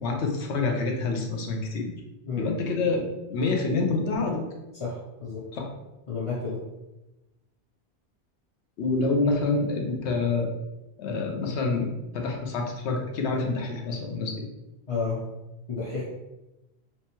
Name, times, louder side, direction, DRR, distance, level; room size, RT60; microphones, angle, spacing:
voice 1, 0.0-1.9 2.4-4.5 5.5-5.7 8.8-10.5 11.0-14.3, left 3 dB, 85° left, 2 dB, 1.0 m, -27 dB
voice 2, 4.8-5.4 6.1-6.6 14.9-15.2 15.7-16.0, left 4 dB, 40° left, -6 dB, 0.6 m, -31 dB
3.3 x 2.9 x 2.9 m, 1.0 s
omnidirectional pair, 1.1 m